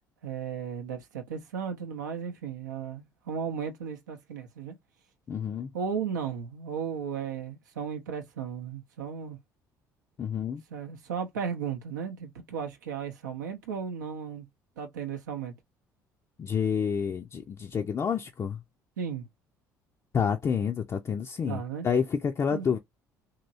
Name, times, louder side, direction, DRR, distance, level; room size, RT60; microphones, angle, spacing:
voice 1, 0.2-4.7 5.7-9.4 10.7-14.5 14.8-15.5 19.0-19.2 21.5-21.9 22.5-22.7, right 7 dB, 75° right, 0.6 m, -35 dB
voice 2, 5.3-5.7 10.2-10.6 16.4-18.6 20.1-22.8, left 7 dB, 30° left, 0.5 m, -29 dB
2.9 x 2.8 x 2.5 m
figure-of-eight pair, 55°, 10 cm